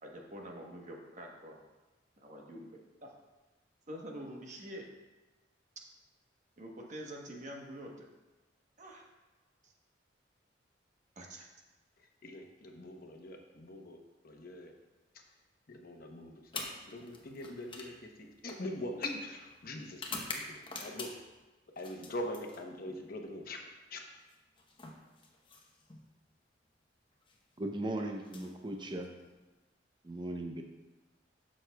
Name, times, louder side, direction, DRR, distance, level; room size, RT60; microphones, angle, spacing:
voice 1, 0.0-1.6 2.2-3.1 3.9-4.9 6.6-8.1 8.8-9.1 9.6-9.7 11.2-11.5, equal, 40° right, 0 dB, 1.1 m, -46 dB
voice 2, 12.2-14.0 14.2-14.7 15.1-15.2 15.7-20.0 20.3-20.4 20.8-21.1 21.8-23.6 23.9-24.0, left 1 dB, 55° left, 2 dB, 0.9 m, -42 dB
sound 1, 16.4-21.4 21.8-23.0 24.2-26.0 27.1-27.4 28.2-29.3, left 3 dB, 30° left, 0.9 m, -46 dB
voice 3, 27.6-29.1 30.0-30.6, right 1 dB, 25° right, 3 dB, 0.6 m, -37 dB
12.0 x 6.3 x 2.3 m, 1.1 s
head